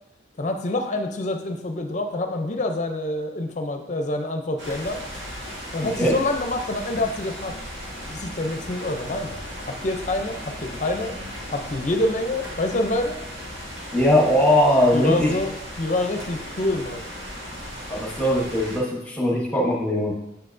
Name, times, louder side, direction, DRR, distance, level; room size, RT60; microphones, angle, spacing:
voice 1, 0.4-5.0 5.7-7.5 8.1-9.4 9.7-11.2 11.5-13.2 14.9-15.5 15.8-17.1, left 2 dB, 35° left, 5 dB, 0.5 m, -26 dB
sound 1, 4.6-18.8, equal, 65° right, 1.4 m, -36 dB
voice 2, 13.9-15.3 17.9-20.1, left 1 dB, 5° left, -3 dB, 1.1 m, -20 dB
6.8 x 5.6 x 2.6 m, 0.91 s
head